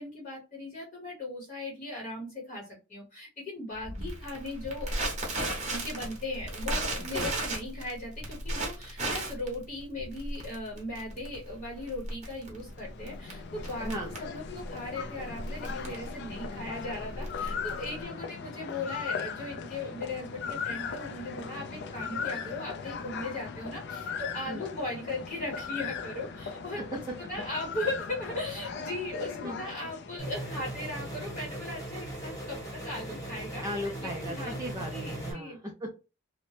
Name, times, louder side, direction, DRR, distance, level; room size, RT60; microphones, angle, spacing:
voice 1, 0.0-4.9 5.7-33.6 34.0-34.5 34.9-35.6, left 2 dB, 35° left, -3 dB, 0.9 m, -38 dB
Crackle, 3.8-18.0, right 1 dB, 35° right, 0.8 m, -36 dB
sound 1, 12.5-30.9, left 6 dB, 50° left, 0.3 m, -39 dB
sound 2, 30.2-35.3, right 1 dB, 15° left, 1.0 m, -38 dB
voice 2, 33.6-35.9, equal, 15° right, -1 dB, 0.4 m, -37 dB
2.8 x 2.0 x 3.1 m, 0.30 s
head